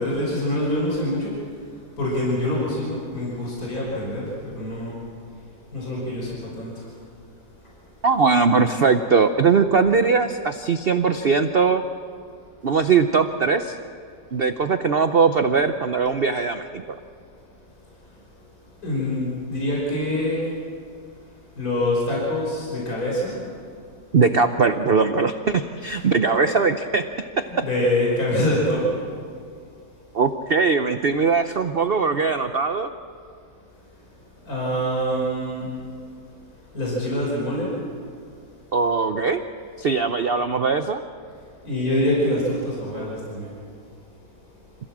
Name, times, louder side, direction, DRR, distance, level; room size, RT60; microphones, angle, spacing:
voice 1, 0.0-1.5 2.0-5.0 5.7-6.9 7.6-7.7 18.8-20.6 21.5-23.4 25.8-25.9 26.3-26.4 27.6-29.0 34.4-35.8 36.7-37.8 41.6-43.6, left 1 dB, 50° left, -5 dB, 5.9 m, -25 dB
voice 2, 8.0-11.8 12.6-13.8 14.3-16.8 24.1-27.0 27.4-27.5 30.1-32.9 38.7-39.4 39.8-41.0, right 5 dB, 85° right, 9 dB, 0.5 m, -20 dB
26.5 x 15.5 x 7.4 m, 2.2 s
omnidirectional pair, 2.0 m